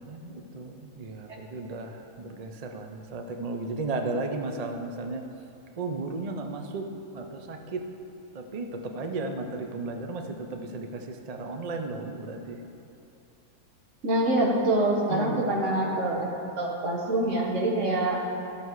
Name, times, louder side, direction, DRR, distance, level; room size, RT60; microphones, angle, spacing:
voice 1, 0.0-5.2 5.8-7.9 8.3-12.6 15.1-15.5, right 3 dB, 75° right, 4 dB, 0.3 m, -34 dB
voice 2, 14.0-16.3 16.6-18.2, right 1 dB, 50° right, -1 dB, 1.6 m, -25 dB
13.5 x 6.8 x 4.7 m, 2.8 s
omnidirectional pair, 1.7 m